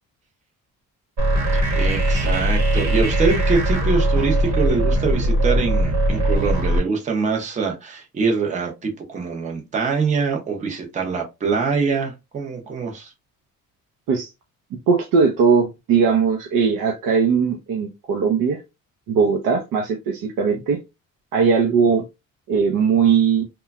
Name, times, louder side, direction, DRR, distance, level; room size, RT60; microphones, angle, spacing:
sound 1, 1.2-6.8, right 1 dB, 55° right, 1.1 m, -20 dB
voice 1, 1.5-13.1, right 5 dB, 20° right, 0.6 m, -24 dB
voice 2, 14.9-18.6 19.1-20.8 21.3-22.0 22.5-23.4, right 6 dB, 80° right, 0.7 m, -19 dB
3.0 x 2.2 x 2.3 m
cardioid pair, 170°, 33 cm